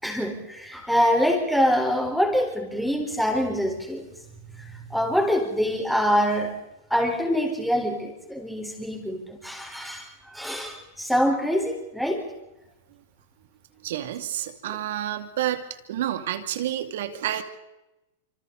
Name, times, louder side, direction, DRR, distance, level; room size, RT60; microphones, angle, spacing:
voice 1, 0.0-4.1 4.5-6.6 6.9-12.3 14.7-14.8, equal, ahead, 2 dB, 4.4 m, -25 dB
voice 2, 13.8-15.6 15.9-17.4, right 12 dB, 70° right, 8 dB, 2.5 m, -29 dB
26.5 x 26.0 x 4.1 m, 0.98 s
hypercardioid pair, 135°, 0 cm